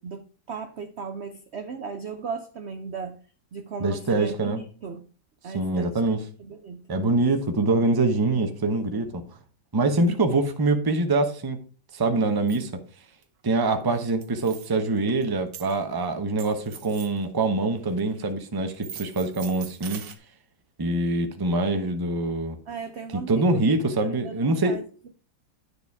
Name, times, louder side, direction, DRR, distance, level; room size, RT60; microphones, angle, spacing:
voice 1, 0.0-3.2 3.5-5.1 5.4-6.0 6.4-6.8 22.7-24.8, right 5 dB, 90° right, 8 dB, 0.5 m, -36 dB
voice 2, 3.8-4.6 5.5-6.3 6.9-9.2 9.7-11.6 11.9-12.8 13.4-20.0 20.8-22.5 23.1-24.8, right 2 dB, 25° right, 6 dB, 0.5 m, -24 dB
sound 1, 12.5-12.6 13.2-13.3 13.5-13.8 14.2-15.2 15.5-15.8 16.4-17.2 17.8-18.2 18.7-20.2, right 9 dB, 60° right, 1.3 m, -42 dB
9.8 x 5.0 x 4.7 m, 0.40 s
omnidirectional pair, 2.0 m